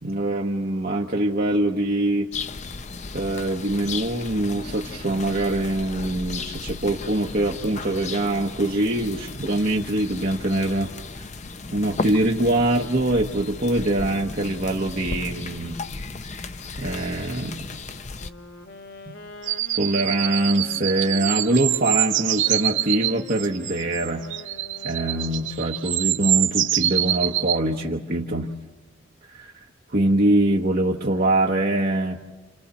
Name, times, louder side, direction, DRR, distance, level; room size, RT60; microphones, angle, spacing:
voice 1, 0.0-2.3 3.1-10.9 11.7-15.8 16.8-17.6 19.7-24.2 24.8-28.5 29.3-29.6 29.9-32.2, right 1 dB, 50° right, -1 dB, 1.1 m, -23 dB
sound 1, 2.3-18.3, left 3 dB, 35° left, 0.7 m, -35 dB
Wind instrument woodwind instrument, 18.1-26.2, left 3 dB, 60° left, 1.3 m, -43 dB
sound 2, 19.4-27.6, right 13 dB, 70° right, 0.7 m, -25 dB
29.5 x 27.5 x 4.2 m, 1.2 s
head